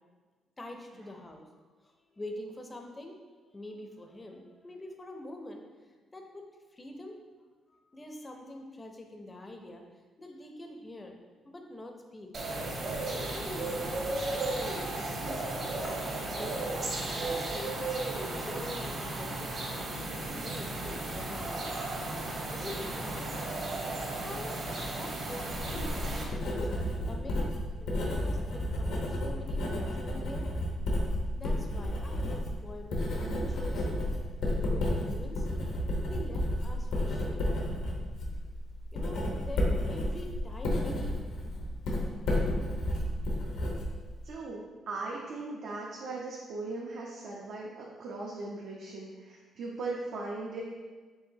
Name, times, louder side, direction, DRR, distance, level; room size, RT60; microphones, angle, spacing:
voice 1, 0.6-1.5 1.8-3.2 3.5-5.6 6.1-7.2 7.7-9.8 10.2-11.2 11.4-12.3 13.3-15.7 16.1-16.8 17.1-21.7 22.3-23.7 24.1-27.4 27.8-30.5 31.4-33.9 34.6-35.5 36.0-37.5 38.9-41.1, left 1 dB, 20° left, 3 dB, 0.5 m, -45 dB
sound 1, 12.3-26.2, right 2 dB, 55° right, 1.0 m, -35 dB
Writing, 25.5-44.3, left 1 dB, 85° left, 0.8 m, -32 dB
voice 2, 44.2-47.7 48.0-50.6, right 3 dB, 75° right, -4 dB, 0.6 m, -38 dB
4.7 x 3.4 x 2.7 m, 1.4 s
cardioid pair, 90°, 0 cm